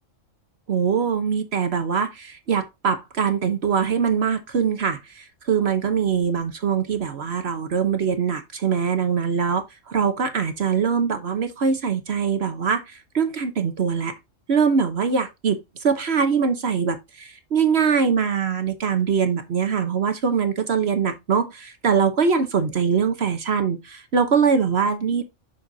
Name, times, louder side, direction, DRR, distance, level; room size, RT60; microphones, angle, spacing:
voice 1, 0.7-14.1 14.5-25.2, right 6 dB, 55° right, 1.1 m, -23 dB
7.6 x 6.1 x 2.7 m
omnidirectional pair, 1.3 m